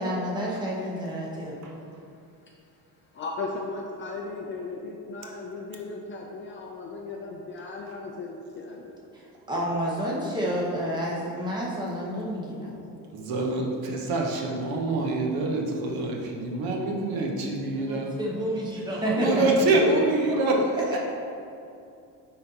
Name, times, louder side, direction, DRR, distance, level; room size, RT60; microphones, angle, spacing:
voice 1, 0.0-1.5 9.1-12.7 17.7-19.4 19.9-20.0 20.3-20.6 20.9-21.0, equal, 10° right, -5 dB, 0.9 m, -30 dB
voice 2, 3.1-9.0, left 3 dB, 30° left, 0 dB, 0.4 m, -36 dB
voice 3, 13.1-18.2 19.1-21.0, right 2 dB, 65° right, 1 dB, 0.9 m, -26 dB
9.3 x 3.8 x 2.8 m, 2.6 s
cardioid pair, 165°, 39 cm